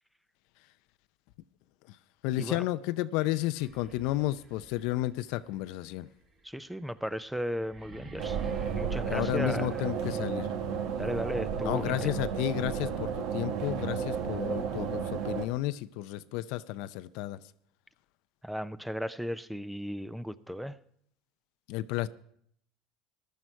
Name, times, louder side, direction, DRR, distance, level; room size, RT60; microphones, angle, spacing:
voice 1, 2.2-6.1 8.9-10.5 11.6-17.4 21.7-22.1, left 16 dB, 70° left, 0.5 m, -32 dB
sound 1, 3.5-10.4, right 3 dB, 45° right, 3.6 m, -50 dB
voice 2, 6.4-8.4 8.8-9.9 11.0-12.1 18.4-20.8, equal, 5° right, 0.6 m, -35 dB
sound 2, 8.2-15.5, right 7 dB, 70° right, 1.3 m, -33 dB
15.0 x 11.0 x 4.5 m
supercardioid pair, 95°, 0 cm